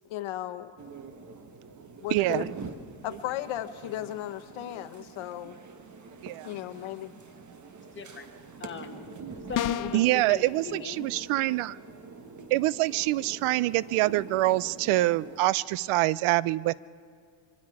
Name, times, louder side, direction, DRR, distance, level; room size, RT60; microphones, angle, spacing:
voice 1, 0.1-0.7 2.0-2.5 3.0-5.6 6.4-7.2, left 13 dB, 70° left, 9 dB, 1.0 m, -35 dB
sound 1, 0.8-15.4, right 4 dB, 35° right, 1.3 m, -45 dB
voice 2, 2.1-2.5 6.2-6.5 9.9-11.8 12.5-16.7, right 17 dB, 85° right, 21 dB, 0.6 m, -25 dB
voice 3, 7.9-8.3 8.6-9.1 9.5-11.1, left 4 dB, 25° left, 4 dB, 1.4 m, -39 dB
sound 2, 9.5-10.1, left 10 dB, 40° left, 0.6 m, -29 dB
25.0 x 24.0 x 4.8 m, 2.3 s
cardioid pair, 135°, 49 cm